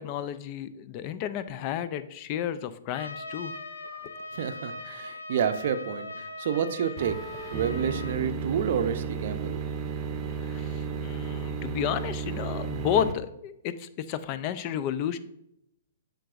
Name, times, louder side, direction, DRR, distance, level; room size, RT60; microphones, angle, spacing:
voice 1, 0.0-3.5 10.4-15.2, left 9 dB, 40° left, 13 dB, 0.5 m, -32 dB
Trumpet, 2.9-8.2, left 2 dB, 80° left, 0.8 m, -40 dB
voice 2, 4.3-7.2 7.5-9.6, right 7 dB, 60° right, 10 dB, 0.6 m, -29 dB
sound 1, 7.0-13.1, right 6 dB, 25° right, 0.7 m, -33 dB
7.5 x 5.2 x 2.5 m, 0.81 s
hypercardioid pair, 125°, 0 cm